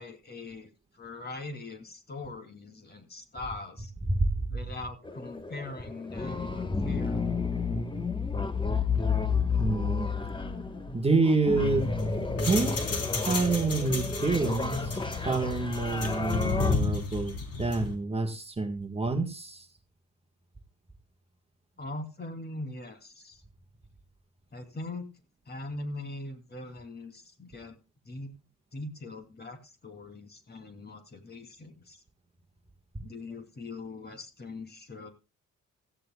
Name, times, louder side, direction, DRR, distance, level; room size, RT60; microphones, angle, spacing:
voice 1, 0.0-3.9 4.5-7.2 21.8-23.4 24.5-25.1 25.5-27.8 28.0-28.3 28.7-32.0 33.0-35.1, left 2 dB, 35° left, 6 dB, 2.9 m, -41 dB
voice 2, 4.1-4.4 9.6-10.1 10.9-11.9 12.4-15.0 15.3-19.7, right 3 dB, 20° right, 4 dB, 1.6 m, -28 dB
sound 1, 5.1-16.8, left 4 dB, 15° left, 1.3 m, -31 dB
sound 2, 11.8-17.9, left 4 dB, 55° left, 3.6 m, -33 dB
16.5 x 14.0 x 2.3 m, 0.29 s
cardioid pair, 90°, 30 cm